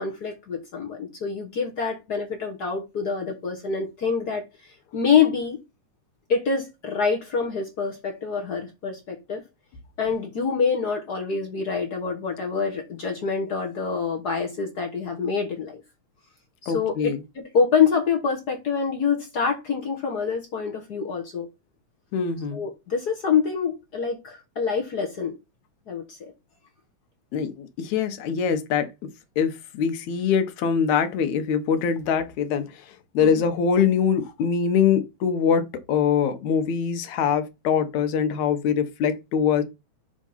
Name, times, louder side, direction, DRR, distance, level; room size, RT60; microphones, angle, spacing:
voice 1, 0.0-4.4 4.9-5.6 6.3-9.4 10.0-15.8 16.6-21.5 22.5-25.4 25.9-26.2 33.2-33.4, left 6 dB, 50° left, 1.2 m, -26 dB
voice 2, 16.7-17.2 22.1-22.6 27.3-28.9 29.4-32.9 33.1-39.6, left 7 dB, 80° left, 2.3 m, -23 dB
6.6 x 3.6 x 5.5 m
omnidirectional pair, 3.3 m